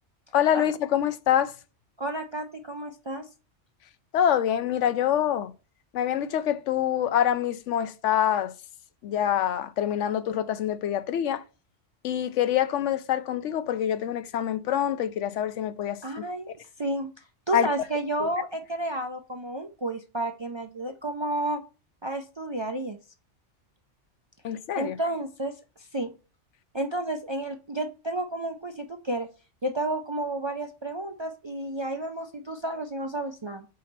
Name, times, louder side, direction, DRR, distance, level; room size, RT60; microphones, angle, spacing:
voice 1, 0.3-1.5 4.1-5.5 5.9-8.5 9.0-11.4 12.0-16.2 17.5-17.7 18.2-18.3 24.4-25.0, left 10 dB, 80° left, 0.9 m, -25 dB
voice 2, 2.0-3.3 16.0-17.1 17.5-21.6 22.0-23.0 24.8-26.1 26.7-29.3 29.6-33.7, right 1 dB, 40° right, 0.3 m, -31 dB
4.9 x 4.1 x 5.9 m
omnidirectional pair, 1.2 m